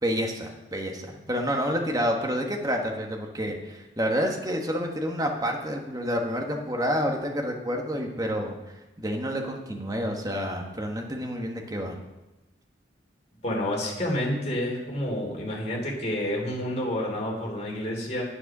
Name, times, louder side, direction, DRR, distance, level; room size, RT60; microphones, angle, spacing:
voice 1, 0.0-12.0, equal, 20° right, 1 dB, 1.4 m, -29 dB
voice 2, 13.4-18.2, left 1 dB, 35° left, -1 dB, 3.1 m, -29 dB
9.9 x 9.3 x 6.1 m, 1.0 s
head